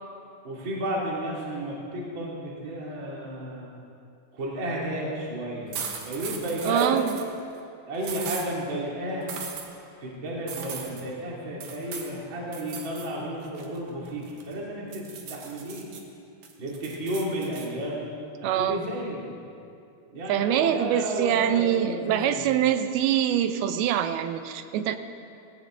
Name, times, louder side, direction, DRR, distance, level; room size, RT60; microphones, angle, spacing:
voice 1, 0.4-3.7 4.3-5.8 6.0-7.0 7.9-9.3 10.0-15.9 16.6-18.0 18.4-19.3 20.1-22.5, right 1 dB, 35° right, -4 dB, 2.7 m, -32 dB
sound 1, 5.7-7.3 8.0-8.5 9.3-9.7 10.5-11.0 11.6-12.1 12.5-13.1 13.4-14.5 14.9-16.0 16.4-17.7, right 6 dB, 65° right, 2.3 m, -38 dB
voice 2, 6.6-7.1 18.4-18.8 20.3-25.0, right 10 dB, 80° right, 9 dB, 2.5 m, -24 dB
17.5 x 17.0 x 3.7 m, 2.5 s
omnidirectional pair, 4.5 m